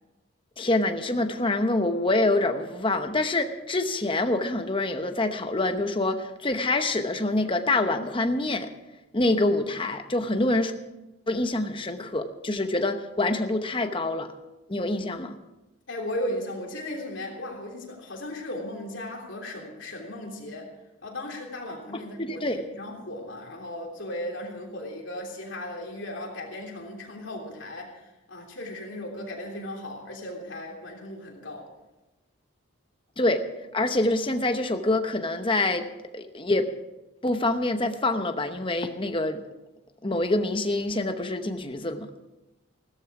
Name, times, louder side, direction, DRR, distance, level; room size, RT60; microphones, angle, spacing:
voice 1, 0.6-8.7 9.1-10.7 11.3-14.3 14.7-15.3 21.9-22.6 33.2-33.4 33.7-35.9 36.1-36.7 37.2-39.4 40.0-42.1, left 2 dB, 25° left, 7 dB, 0.9 m, -26 dB
voice 2, 15.9-20.7 21.0-31.7, left 1 dB, 60° left, 0 dB, 3.2 m, -36 dB
16.0 x 13.0 x 4.9 m, 1.0 s
head